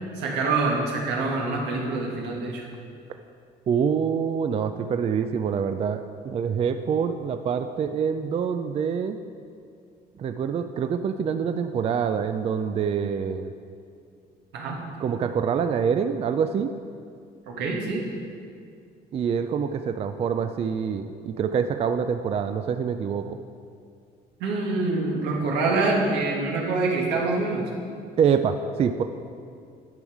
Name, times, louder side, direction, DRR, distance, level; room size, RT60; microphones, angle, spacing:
voice 1, 0.1-2.6 14.5-14.8 17.5-18.0 24.4-27.7, right 3 dB, 85° right, -1 dB, 1.6 m, -25 dB
voice 2, 3.7-9.2 10.2-13.5 15.0-16.7 19.1-23.4 28.2-29.0, right 7 dB, 35° right, 8 dB, 0.4 m, -25 dB
10.5 x 5.4 x 4.8 m, 2.3 s
cardioid pair, 110°, 17 cm